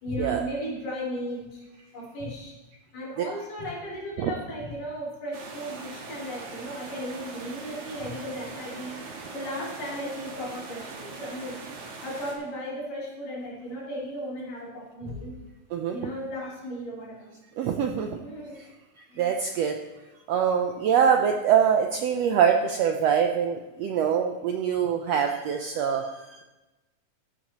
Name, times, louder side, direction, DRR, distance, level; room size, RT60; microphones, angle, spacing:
voice 1, 0.0-1.6 1.9-2.5 2.9-9.0 9.3-11.6 12.0-15.3 15.9-17.3 18.2-18.6 19.1-19.3, equal, 85° left, -6 dB, 5.0 m, -35 dB
sound 1, 5.3-12.3, right 3 dB, 65° right, 3.1 m, -41 dB
voice 2, 17.6-18.1 18.6-18.7 19.1-19.8 20.3-26.4, right 8 dB, 80° right, 4 dB, 1.5 m, -24 dB
15.0 x 11.5 x 3.0 m, 1.1 s
omnidirectional pair, 3.7 m